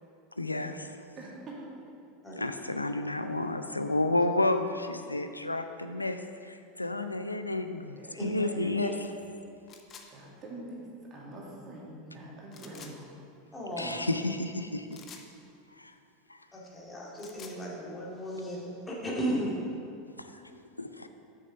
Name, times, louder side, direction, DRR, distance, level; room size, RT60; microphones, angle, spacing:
voice 1, 0.4-1.0 2.3-8.9 13.8-15.0 15.8-15.9 16.3-16.4 20.2-21.1, left 2 dB, 90° left, 8 dB, 0.4 m, -31 dB
voice 2, 1.2-1.8 7.9-8.7 10.1-13.1 13.7-14.0, right 1 dB, 35° right, -4 dB, 2.2 m, -45 dB
sound 1, 9.7-10.1 12.5-12.9 14.9-15.3 17.0-17.6, left 6 dB, 35° left, 0.8 m, -49 dB
voice 3, 13.5-14.0 16.5-19.6, equal, 15° left, -4 dB, 2.2 m, -35 dB
6.5 x 6.5 x 5.6 m, 2.5 s
figure-of-eight pair, 85°, 0 cm